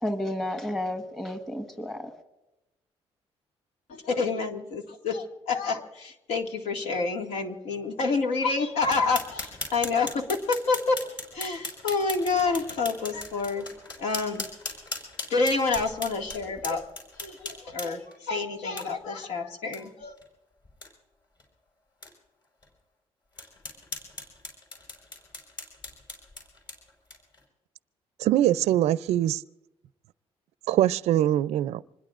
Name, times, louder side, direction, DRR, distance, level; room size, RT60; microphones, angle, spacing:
voice 1, 0.0-2.1, left 1 dB, 5° left, 6 dB, 1.3 m, -31 dB
voice 2, 3.9-13.7 14.0-14.5 15.3-16.9 17.1-20.2, left 4 dB, 80° left, 2 dB, 2.0 m, -28 dB
sound 1, 8.8-18.1 18.8-18.9 19.2-19.3 19.7-19.8 20.2-20.3 20.7-20.9 21.4-21.5 22.0-22.1 22.6-22.7 23.4-27.4, left 2 dB, 45° left, 5.3 m, -39 dB
voice 3, 28.2-29.4 30.7-31.8, right 12 dB, 85° right, 17 dB, 0.4 m, -23 dB
26.0 x 21.0 x 2.5 m, 0.95 s
cardioid pair, 160°, 11 cm